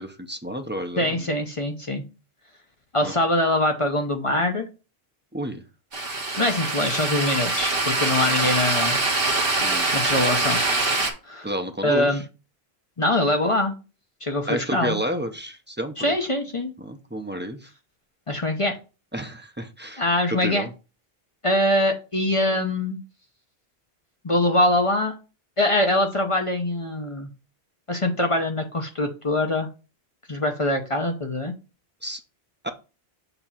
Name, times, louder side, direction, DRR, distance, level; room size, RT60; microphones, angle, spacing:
voice 1, 0.0-1.3 3.0-3.1 5.3-5.6 9.6-9.9 11.4-12.2 14.5-16.2 16.8-17.7 19.1-20.0 20.4-20.7 32.0-32.2 32.6-32.7, right 1 dB, 15° right, 5 dB, 0.6 m, -31 dB
voice 2, 1.0-2.0 2.9-4.7 6.4-9.0 9.9-10.6 11.3-11.5 11.8-12.2 13.0-13.7 14.2-15.0 16.0-16.7 18.3-18.8 20.0-20.6 21.4-23.0 24.2-25.1 25.6-27.3 27.9-29.7 30.3-31.5, left 1 dB, 35° left, 3 dB, 0.8 m, -23 dB
sound 1, 5.9-11.1, right 2 dB, 65° right, 1.5 m, -24 dB
6.9 x 2.9 x 5.7 m, 0.31 s
omnidirectional pair, 1.0 m